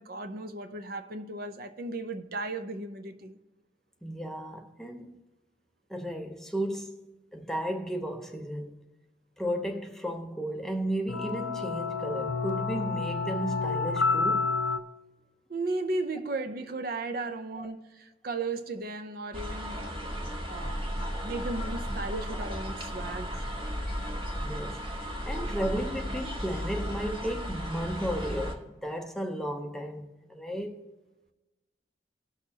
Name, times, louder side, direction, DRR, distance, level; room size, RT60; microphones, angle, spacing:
voice 1, 0.0-3.4 15.5-19.9 20.5-20.9 21.2-23.4, right 2 dB, 55° right, 0.7 m, -35 dB
voice 2, 4.0-5.2 5.9-8.8 9.4-14.5 17.6-17.7 23.8-24.0 24.4-24.8 25.2-30.8, right 1 dB, ahead, 0.7 m, -34 dB
sound 1, 11.1-14.8, left 4 dB, 85° left, 0.6 m, -29 dB
sound 2, 19.3-28.5, equal, 30° right, 1.5 m, -35 dB
19.5 x 6.5 x 2.8 m
head